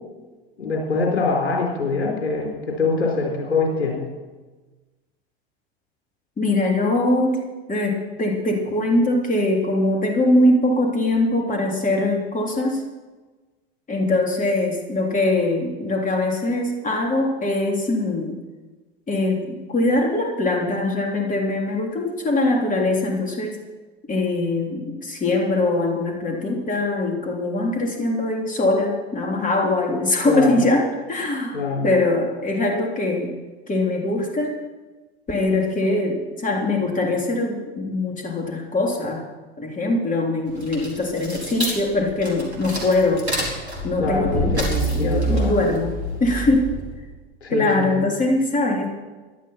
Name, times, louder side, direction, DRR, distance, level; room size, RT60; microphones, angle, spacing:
voice 1, 0.6-4.1 30.2-30.6 31.5-31.9 44.0-45.5 47.4-48.1, left 3 dB, 80° left, 0 dB, 4.1 m, -24 dB
voice 2, 6.4-7.4 7.7-12.8 13.9-18.4 19.1-23.6 24.1-33.3 33.7-34.5 35.3-39.3 39.6-43.3 43.8-45.9 46.2-46.7 47.5-48.9, left 2 dB, 25° left, 1 dB, 3.6 m, -22 dB
sound 1, 40.5-47.0, right 2 dB, 85° right, 4.5 m, -27 dB
17.0 x 11.5 x 5.9 m, 1.2 s
figure-of-eight pair, 75°, 32 cm